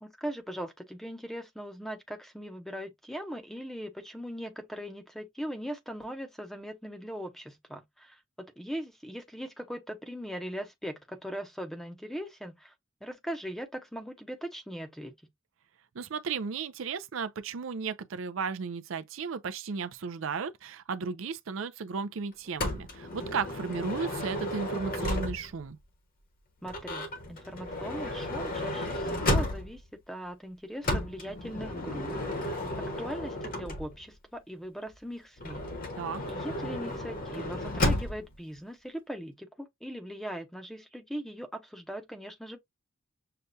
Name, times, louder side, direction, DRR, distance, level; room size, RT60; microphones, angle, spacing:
voice 1, 0.0-12.7 13.0-15.1 26.6-29.8 30.1-32.6 33.0-35.7 36.3-42.6, equal, ahead, 0.7 m, -40 dB
voice 2, 15.9-25.8 36.0-36.2, right 5 dB, 75° right, 0.5 m, -34 dB
Motor vehicle (road) / Sliding door, 22.6-25.7 26.6-29.9 30.8-34.1 35.4-38.3, left 1 dB, 45° left, 1.1 m, -33 dB
6.7 x 2.2 x 2.6 m
head